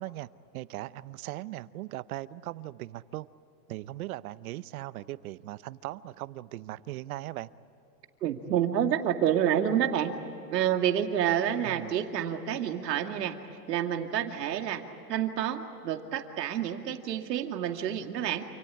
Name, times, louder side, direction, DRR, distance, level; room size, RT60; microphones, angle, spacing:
voice 1, 0.0-3.3 3.7-7.5 11.7-11.9, right 16 dB, 60° right, 17 dB, 0.9 m, -39 dB
voice 2, 8.2-10.1 10.5-13.4 13.7-14.8 15.1-18.5, right 10 dB, 80° right, 5 dB, 2.4 m, -28 dB
28.5 x 18.0 x 10.0 m, 3.0 s
supercardioid pair, 145°, 48 cm